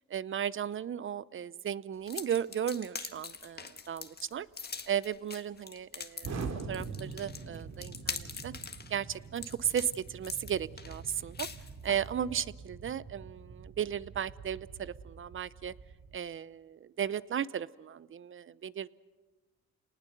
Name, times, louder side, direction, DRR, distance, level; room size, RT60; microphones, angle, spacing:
voice 1, 0.1-4.5 4.9-8.5 8.9-11.5 11.8-15.7 16.1-18.9, right 9 dB, 40° right, 18 dB, 0.7 m, -35 dB
sound 1, 2.1-12.1, left 5 dB, 30° left, 1.7 m, -43 dB
Explosion, 6.2-16.2, right 4 dB, 60° right, 2.6 m, -44 dB
29.5 x 19.5 x 6.8 m, 1.3 s
cardioid pair, 90°, 30 cm